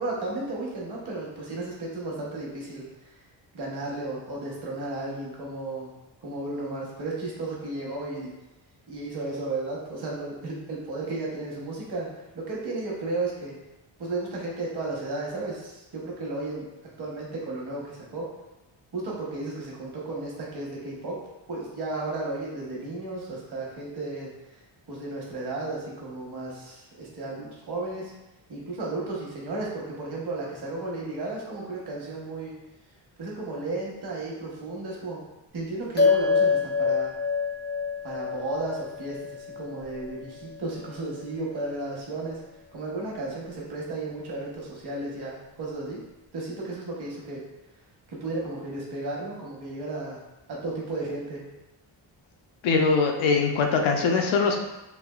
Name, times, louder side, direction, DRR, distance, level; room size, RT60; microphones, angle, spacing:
voice 1, 0.0-2.8 3.5-5.9 6.2-8.3 8.9-12.1 12.3-13.5 14.0-16.7 17.0-18.3 18.9-21.2 21.5-24.3 24.9-28.1 28.5-32.6 33.2-35.2 35.5-37.1 38.0-42.4 42.7-46.0 46.3-47.4 48.1-50.2 50.5-51.4, right 2 dB, 55° right, -4 dB, 1.1 m, -34 dB
sound 1, 36.0-40.7, left 5 dB, 25° left, 0.4 m, -26 dB
voice 2, 52.6-54.6, left 4 dB, 75° left, 3 dB, 0.6 m, -22 dB
3.3 x 2.5 x 2.3 m, 0.98 s
cardioid pair, 120°, 47 cm